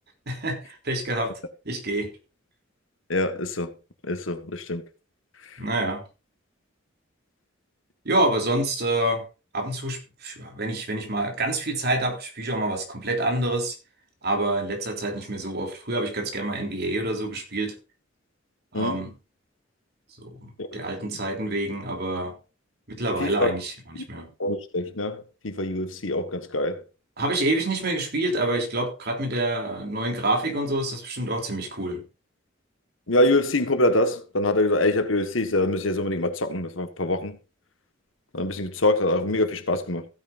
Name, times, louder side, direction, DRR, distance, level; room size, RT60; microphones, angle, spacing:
voice 1, 0.2-1.4 1.6-2.1 5.6-6.0 8.0-9.2 9.5-13.7 14.2-17.7 18.7-19.1 20.2-22.3 22.9-24.3 27.2-32.0, right 1 dB, 55° right, 3.4 m, -27 dB
voice 2, 3.1-3.7 4.0-4.8 5.5-5.6 18.7-19.1 20.6-20.7 23.2-23.5 23.9-26.8 33.1-37.4 38.3-40.1, left 1 dB, 85° left, 1.6 m, -25 dB
15.5 x 9.2 x 2.6 m
head